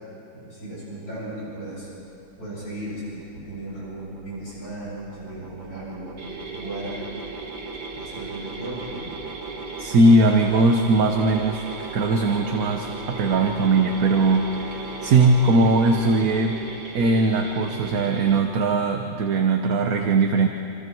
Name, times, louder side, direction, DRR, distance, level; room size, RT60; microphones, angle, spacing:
voice 1, 0.4-1.9 2.4-7.3 7.9-9.1, right 1 dB, 45° left, -8 dB, 8.0 m, -36 dB
sound 1, 1.4-17.6, right 3 dB, 20° right, 2.0 m, -41 dB
sound 2, 6.2-18.4, right 3 dB, 85° right, 3.8 m, -37 dB
voice 2, 9.8-11.7 11.9-16.6 16.9-20.5, right 2 dB, 50° right, 3 dB, 1.3 m, -20 dB
27.5 x 27.5 x 4.7 m, 3.0 s
omnidirectional pair, 2.2 m